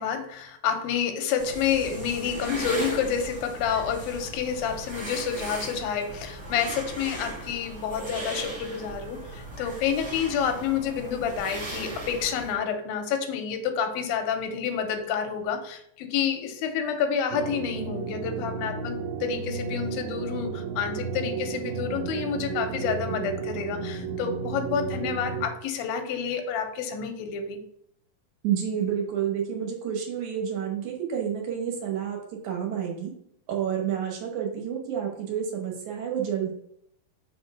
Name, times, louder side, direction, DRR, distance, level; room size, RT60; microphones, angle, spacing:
voice 1, 0.0-27.6, left 7 dB, 85° left, 6 dB, 2.5 m, -29 dB
Sniffing flowers, 1.4-12.5, right 1 dB, 40° right, 1.0 m, -38 dB
sound 1, 17.3-25.5, right 5 dB, 90° right, 1.6 m, -33 dB
voice 2, 28.4-33.1 33.5-36.5, right 8 dB, 70° right, 1 dB, 2.0 m, -29 dB
5.1 x 4.3 x 5.2 m, 0.72 s
omnidirectional pair, 4.2 m